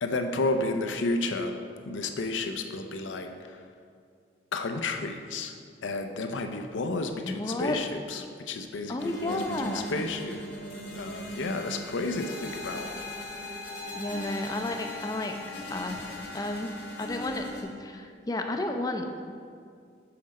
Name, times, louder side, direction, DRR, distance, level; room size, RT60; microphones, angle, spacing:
voice 1, 0.0-1.5 1.9-3.6 4.5-5.5 5.8-10.4 10.9-12.9, left 2 dB, 90° left, 6 dB, 0.6 m, -31 dB
voice 2, 7.3-7.8 8.9-9.9 13.9-16.0 16.3-19.1, left 2 dB, 20° left, 5 dB, 0.4 m, -32 dB
sound 1, 9.0-17.6, left 1 dB, 70° left, 1.6 m, -39 dB
6.3 x 5.8 x 4.2 m, 2.2 s
head